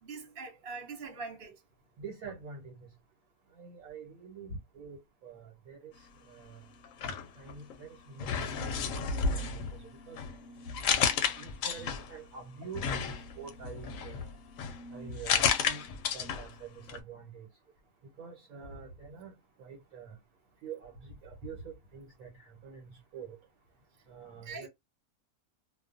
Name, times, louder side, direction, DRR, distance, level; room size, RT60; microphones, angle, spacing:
voice 1, 0.0-1.6 24.4-24.7, right 4 dB, 50° right, 0.8 m, -42 dB
voice 2, 2.0-2.8 3.5-5.9 6.3-6.6 7.4-8.7 9.1-9.6 10.1-10.2 10.8-14.3 14.9-15.8 16.1-17.5 18.2-19.3 19.6-20.2 20.6-23.4 24.1-24.7, right 5 dB, 75° right, 1.3 m, -46 dB
sound 1, 6.8-7.8 8.2-12.2 12.7-16.6 16.9-17.0, left 6 dB, 70° left, 0.9 m, -32 dB
2.4 x 2.3 x 2.5 m
omnidirectional pair, 1.5 m